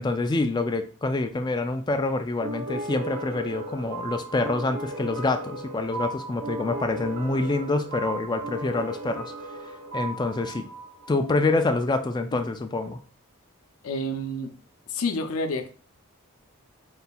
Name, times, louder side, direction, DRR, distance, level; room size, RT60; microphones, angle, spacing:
voice 1, 0.0-9.3 9.9-10.7 11.1-13.0, left 2 dB, 20° left, 7 dB, 0.3 m, -26 dB
sound 1, 2.4-11.7, right 2 dB, 60° right, 0.8 m, -36 dB
voice 2, 13.8-14.5 14.9-15.7, left 1 dB, 70° left, 7 dB, 0.6 m, -28 dB
4.2 x 3.9 x 2.3 m, 0.38 s
head